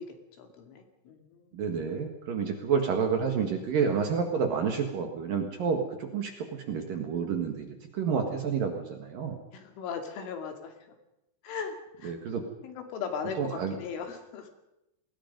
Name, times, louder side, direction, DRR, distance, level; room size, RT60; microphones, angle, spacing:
voice 1, 0.0-1.7 9.5-11.0 11.4-12.3 12.6-14.5, left 6 dB, 75° left, 5 dB, 4.8 m, -38 dB
voice 2, 1.5-9.4 12.0-12.4 13.4-13.7, right 6 dB, 55° right, 4 dB, 2.8 m, -29 dB
28.0 x 20.5 x 5.3 m, 0.89 s
omnidirectional pair, 5.8 m